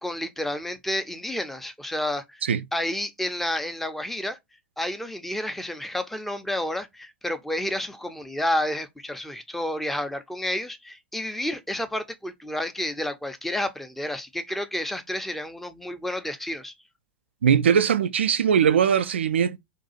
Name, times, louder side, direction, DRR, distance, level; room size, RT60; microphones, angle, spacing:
voice 1, 0.0-2.4 2.7-4.4 4.8-16.7, left 1 dB, 5° left, 0.6 m, -30 dB
voice 2, 17.4-19.6, right 7 dB, 75° right, 0.3 m, -20 dB
2.6 x 2.4 x 4.0 m
figure-of-eight pair, 90°, 6 cm